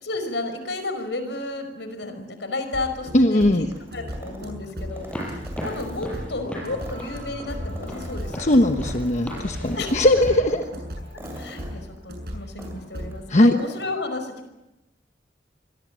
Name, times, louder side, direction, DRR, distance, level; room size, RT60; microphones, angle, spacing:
voice 1, 0.0-3.4 3.9-8.7 9.8-10.1 11.1-14.5, left 2 dB, 75° left, 8 dB, 5.3 m, -32 dB
sound 1, 2.7-13.2, equal, 60° right, 7.4 m, -36 dB
voice 2, 3.1-3.7 8.4-10.6 13.3-13.6, left 1 dB, 40° left, 6 dB, 1.1 m, -19 dB
sound 2, 3.7-6.3 6.7-9.3 9.6-13.1 13.4-13.9, equal, 15° right, 7.4 m, -43 dB
sound 3, 4.9-10.3, equal, 5° left, 7.7 m, -36 dB
28.0 x 22.5 x 7.7 m, 0.96 s
head